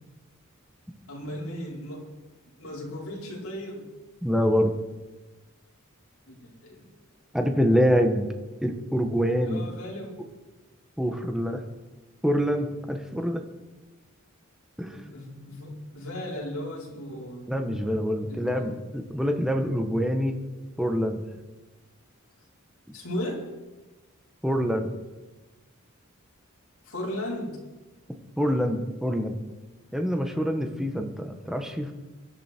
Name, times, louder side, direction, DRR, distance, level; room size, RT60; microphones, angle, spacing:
voice 1, 1.1-2.1 2.6-3.8 6.3-6.9 9.4-10.2 14.9-17.4 18.3-18.8 22.9-23.4 26.8-27.6, left 1 dB, 70° left, -3 dB, 5.0 m, -36 dB
voice 2, 4.2-4.7 7.3-8.3 8.6-9.7 11.0-11.6 12.2-13.4 14.8-15.0 17.5-20.4 20.8-21.2 24.4-25.0 28.4-29.4 29.9-31.9, equal, ahead, 4 dB, 1.4 m, -25 dB
24.0 x 12.0 x 4.6 m, 1.2 s
head